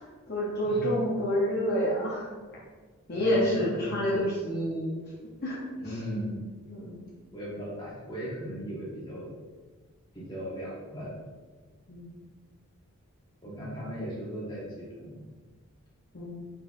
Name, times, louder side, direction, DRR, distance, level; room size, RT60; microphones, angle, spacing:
voice 1, 0.0-2.3 3.1-4.9 5.4-5.6 6.7-7.0 11.9-12.1 16.1-16.4, equal, 45° left, -6 dB, 0.8 m, -28 dB
voice 2, 3.1-4.3 5.8-6.4 7.3-9.3 10.1-11.1 13.4-15.2, equal, 20° left, -7 dB, 1.3 m, -37 dB
4.5 x 4.1 x 2.5 m, 1.4 s
head